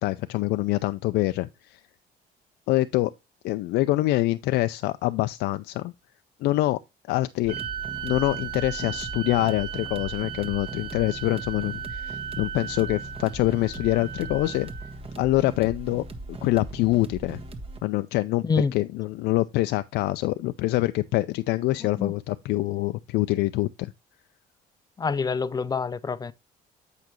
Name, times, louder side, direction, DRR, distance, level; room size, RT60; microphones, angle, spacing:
voice 1, 0.0-1.8 2.7-3.1 3.4-5.9 6.4-6.8 7.1-7.5 8.0-14.7 15.2-17.4 17.8-23.9, left 17 dB, 80° left, 0.4 m, -25 dB
sound 1, 7.4-17.8, right 2 dB, 35° right, 1.3 m, -39 dB
sound 2, 7.5-15.0, right 10 dB, 85° right, 1.9 m, -37 dB
voice 2, 21.8-22.1 25.0-26.3, left 5 dB, 25° left, 0.5 m, -27 dB
8.2 x 5.9 x 3.0 m
cardioid pair, 110°, 17 cm